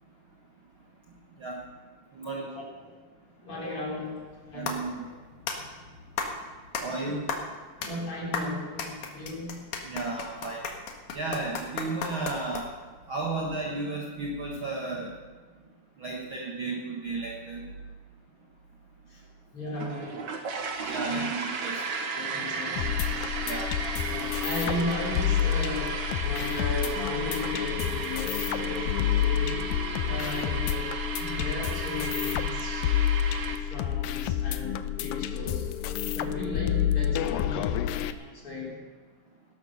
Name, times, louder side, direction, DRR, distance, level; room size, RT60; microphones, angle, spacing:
voice 1, 2.4-3.0 3.4-4.9 7.0-7.2 7.8-9.7 19.1-19.2 19.5-20.3 21.0-21.3 21.7-21.8 22.1-23.3 23.8-32.9 33.6-37.8 38.1-38.8, left 2 dB, 40° left, -4 dB, 4.8 m, -36 dB
sound 1, 4.2-12.9, left 5 dB, 65° left, 2.9 m, -36 dB
voice 2, 4.5-5.0 6.8-7.2 9.8-10.6 11.1-12.7 13.1-15.1 16.0-17.6 20.9-21.8 23.4-23.7, right 3 dB, 45° right, -3 dB, 2.1 m, -33 dB
sound 2, 19.7-33.5, right 4 dB, 60° right, 1.1 m, -35 dB
sound 3, 22.8-38.1, left 10 dB, 85° left, 2.3 m, -29 dB
16.5 x 11.5 x 6.7 m, 1.4 s
omnidirectional pair, 4.0 m